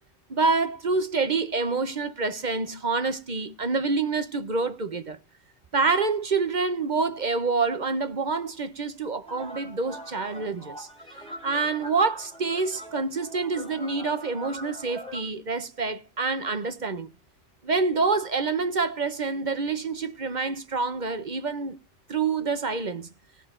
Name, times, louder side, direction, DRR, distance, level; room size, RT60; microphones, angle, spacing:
voice 1, 0.3-5.2 5.7-10.9 11.4-17.1 17.6-21.8 22.1-23.1, right 4 dB, 40° right, 0.9 m, -27 dB
sound 1, 9.2-15.2, equal, 5° left, 4.3 m, -42 dB
19.0 x 6.6 x 3.7 m
omnidirectional pair, 1.4 m